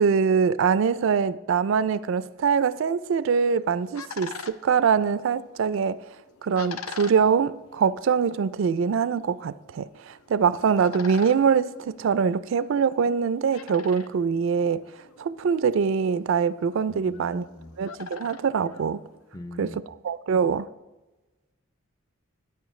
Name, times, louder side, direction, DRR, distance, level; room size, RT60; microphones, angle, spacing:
voice 1, 0.0-6.0 6.4-14.8 15.2-17.5 17.8-19.0 19.6-20.7, right 6 dB, 60° right, 0.3 m, -23 dB
sound 1, 3.3-19.5, left 5 dB, 85° left, 0.7 m, -45 dB
voice 2, 16.9-17.8 19.3-19.8, left 1 dB, 15° left, 0.4 m, -41 dB
14.0 x 9.7 x 3.2 m
head